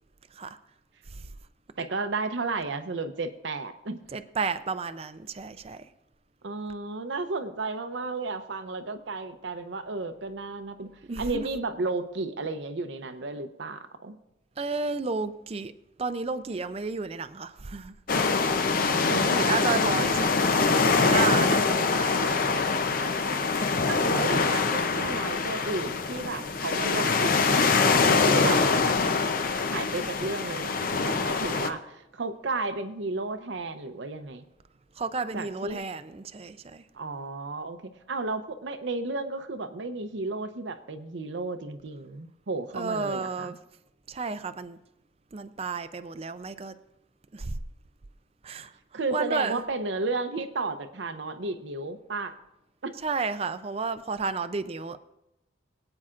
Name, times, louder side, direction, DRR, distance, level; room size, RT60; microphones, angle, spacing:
voice 1, 1.8-4.0 6.4-10.9 11.2-14.2 18.7-20.1 23.9-28.6 29.7-34.4 35.3-35.8 36.9-43.5 48.9-52.3 52.8-52.9, right 3 dB, 70° right, 0.7 m, -33 dB
voice 2, 4.1-5.8 11.1-11.5 14.6-15.7 16.0-17.9 19.1-20.3 21.0-22.7 28.4-28.6 35.0-36.8 42.8-43.6 44.1-44.8 45.3-46.7 47.3-47.6 48.4-48.7 49.1-49.6 53.0-55.0, right 4 dB, 30° right, 0.4 m, -32 dB
sound 1, 18.1-31.7, left 4 dB, 45° left, 0.6 m, -24 dB
23.0 x 8.7 x 2.5 m
head